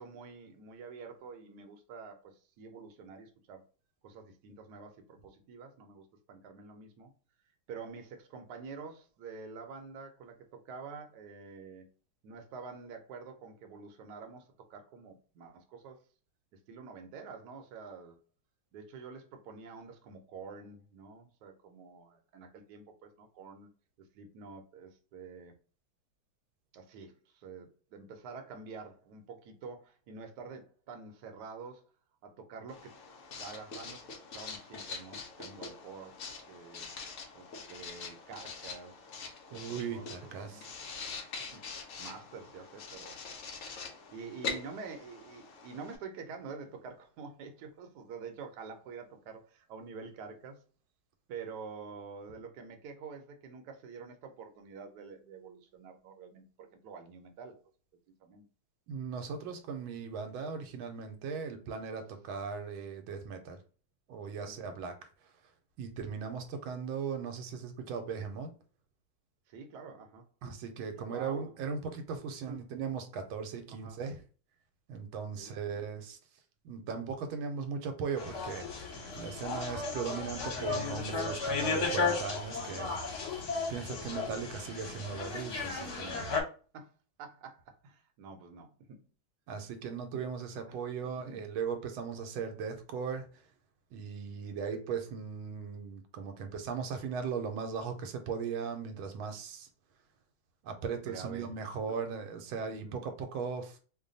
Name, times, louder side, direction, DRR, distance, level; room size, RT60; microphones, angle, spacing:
voice 1, 0.0-3.6 4.0-7.1 7.7-11.9 12.2-16.0 16.7-18.2 18.7-23.7 24.1-25.5 26.7-31.8 32.2-33.0 33.4-36.9 37.3-39.1 39.5-40.7 41.4-41.6 42.0-43.2 44.1-50.6 51.3-57.6 58.2-58.4 64.5-64.8 69.5-70.3 70.9-71.5 72.4-72.6 73.7-74.0 75.4-75.9 86.7-86.9 87.2-89.0 90.7-90.8 91.2-91.4 101.0-101.6 102.7-103.0, right 5 dB, 65° right, 1.1 m, -47 dB
Writing, 32.7-46.0, left 4 dB, 80° left, 0.6 m, -44 dB
voice 2, 39.5-40.7 58.9-63.6 64.1-64.9 65.8-68.5 70.4-74.2 74.9-76.2 76.6-83.4 83.7-86.3 89.5-93.3 93.9-99.7 100.6-103.8, right 6 dB, 85° right, 1.4 m, -38 dB
sound 1, 78.2-86.4, left 4 dB, 55° left, 1.3 m, -34 dB
3.2 x 2.2 x 3.8 m
omnidirectional pair, 2.2 m